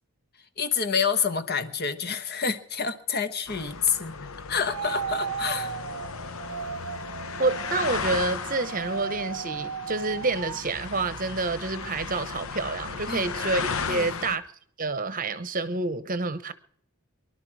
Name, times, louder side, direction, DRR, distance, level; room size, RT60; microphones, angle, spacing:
voice 1, 0.6-4.2 4.5-5.8 13.1-13.3 13.9-14.2, left 6 dB, 45° left, 1.2 m, -28 dB
sound 1, 3.5-14.4, left 5 dB, 70° left, 1.0 m, -35 dB
sound 2, 4.7-10.6, right 7 dB, 80° right, 0.6 m, -35 dB
voice 2, 7.4-14.4 14.8-16.5, right 3 dB, 40° right, 0.9 m, -28 dB
24.0 x 12.0 x 4.7 m
head